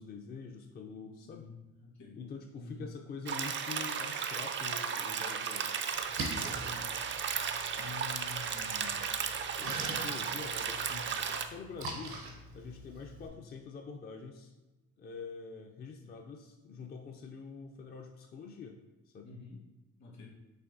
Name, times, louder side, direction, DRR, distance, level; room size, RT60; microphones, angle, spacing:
voice 1, 0.0-1.5 2.2-5.9 7.7-9.1 9.6-12.2 12.5-14.5 15.0-19.3, left 5 dB, 35° left, 2 dB, 0.4 m, -46 dB
voice 2, 1.8-2.2 2.6-2.9 6.5-6.8 16.0-16.1 19.2-19.6 20.0-20.3, left 3 dB, 65° left, -1 dB, 1.3 m, -50 dB
sound 1, 3.3-11.5, right 7 dB, 40° right, 0.4 m, -35 dB
Splash splatter, 5.9-13.3, right 2 dB, 80° right, 0.9 m, -44 dB
5.5 x 3.2 x 2.6 m, 1.1 s
cardioid pair, 90°, 30 cm